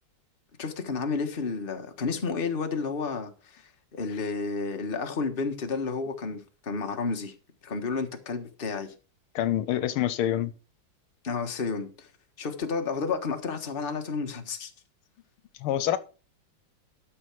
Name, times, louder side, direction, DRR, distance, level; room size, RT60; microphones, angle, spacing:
voice 1, 0.6-7.3 7.6-8.9 11.2-12.1 12.4-14.7, left 4 dB, 30° left, 1.4 m, -31 dB
voice 2, 9.3-10.5 15.6-16.0, left 12 dB, 85° left, 1.6 m, -26 dB
12.5 x 6.3 x 4.7 m
omnidirectional pair, 2.4 m